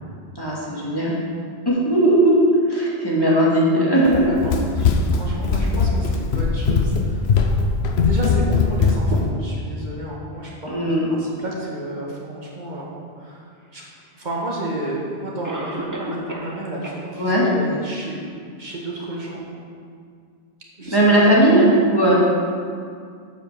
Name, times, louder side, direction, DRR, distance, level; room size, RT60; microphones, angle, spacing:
voice 1, 0.4-1.1 1.7-2.4 2.7-4.3 10.7-11.1 17.2-17.5 20.9-22.1, right 1 dB, 20° left, -7 dB, 2.3 m, -17 dB
Run, 4.0-9.3, left 4 dB, 65° left, 1.0 m, -20 dB
voice 2, 4.0-7.3 8.0-10.8 11.1-12.8 13.1-13.8 14.1-19.4 20.8-21.0 21.2-21.4, right 1 dB, 40° right, -4 dB, 1.9 m, -31 dB
Cough, 14.3-14.4 15.4-16.6 16.8-16.9 17.5-17.6 18.1-18.2, equal, 20° right, 0.9 m, -31 dB
8.6 x 5.6 x 6.9 m, 2.2 s
omnidirectional pair, 1.2 m